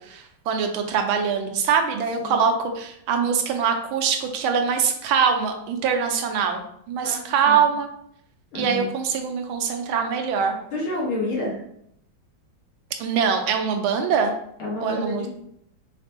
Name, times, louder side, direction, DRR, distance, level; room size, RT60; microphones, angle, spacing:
voice 1, 0.0-6.6 6.9-7.9 8.5-10.5 13.0-14.3 14.8-15.3, right 6 dB, 85° right, 5 dB, 1.5 m, -23 dB
voice 2, 8.5-8.9 10.7-11.6 14.6-15.3, left 2 dB, 85° left, -4 dB, 2.2 m, -29 dB
5.1 x 3.3 x 2.8 m, 0.73 s
omnidirectional pair, 2.3 m